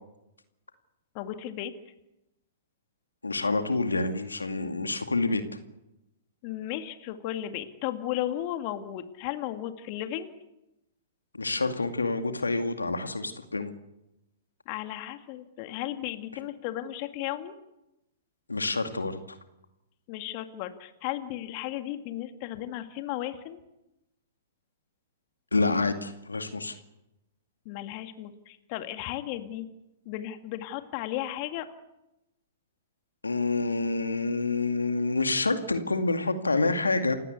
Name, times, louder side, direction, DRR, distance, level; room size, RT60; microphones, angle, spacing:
voice 1, 1.1-1.7 6.4-10.3 14.7-17.5 20.1-23.6 27.7-29.7 30.1-31.7, left 13 dB, 45° left, 8 dB, 2.1 m, -35 dB
voice 2, 3.2-5.4 11.3-13.7 18.5-19.4 25.5-26.7 33.2-37.2, left 3 dB, 90° left, 7 dB, 2.3 m, -27 dB
29.0 x 16.5 x 8.3 m, 0.90 s
figure-of-eight pair, 115°, 0 cm